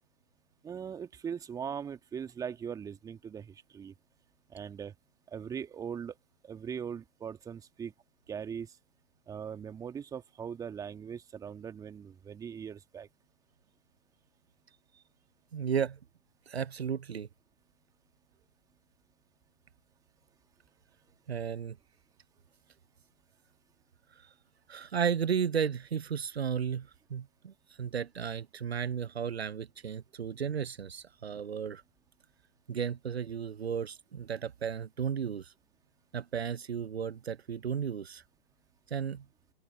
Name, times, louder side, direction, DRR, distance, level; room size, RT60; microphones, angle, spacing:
voice 1, 0.6-3.9 4.5-4.9 5.3-6.1 6.4-7.9 8.3-8.7 9.3-13.1, right 7 dB, 10° right, 1.9 m, -40 dB
voice 2, 15.5-16.0 16.5-17.3 21.3-21.8 24.7-31.8 32.7-35.5 36.1-38.2 38.9-39.2, right 7 dB, 85° right, 0.5 m, -34 dB
figure-of-eight pair, 125°, 31 cm